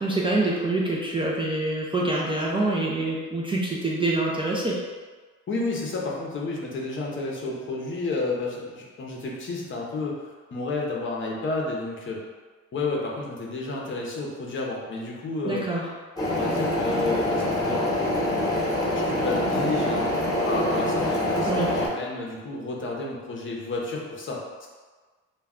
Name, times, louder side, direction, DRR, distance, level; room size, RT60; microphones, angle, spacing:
voice 1, 0.0-4.8 15.5-15.8 21.5-21.7, right 2 dB, 20° right, -4 dB, 0.4 m, -26 dB
voice 2, 5.5-12.2 12.7-15.6 16.3-18.5 18.9-20.1 20.5-24.7, left 3 dB, 40° left, -2 dB, 0.6 m, -31 dB
sound 1, 16.2-21.9, left 1 dB, 15° left, 0.9 m, -25 dB
2.2 x 2.2 x 3.6 m, 1.4 s
cardioid pair, 90°, 30 cm